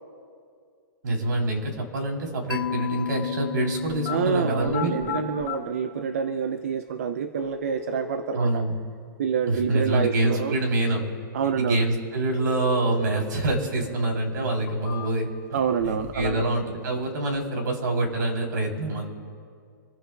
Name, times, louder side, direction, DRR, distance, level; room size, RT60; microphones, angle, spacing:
voice 1, 1.0-5.0 8.3-8.7 9.5-11.0 11.6-15.6 15.8-19.1, right 2 dB, 60° right, 2 dB, 3.3 m, -26 dB
Mallet percussion, 2.5-6.5, left 10 dB, 75° left, 0.5 m, -34 dB
sound 1, 3.9-4.2 4.6-5.6 6.6-6.7 7.4-8.4 12.4-13.4 13.8-13.9 14.5-15.4 15.8-16.5 16.8-17.4, left 13 dB, 20° left, 3.6 m, -37 dB
voice 2, 4.1-8.7 9.2-10.6 11.3-11.8 15.5-16.5, right 6 dB, 40° right, 9 dB, 0.5 m, -27 dB
27.0 x 15.0 x 2.3 m, 2.2 s
hypercardioid pair, 180°, 12 cm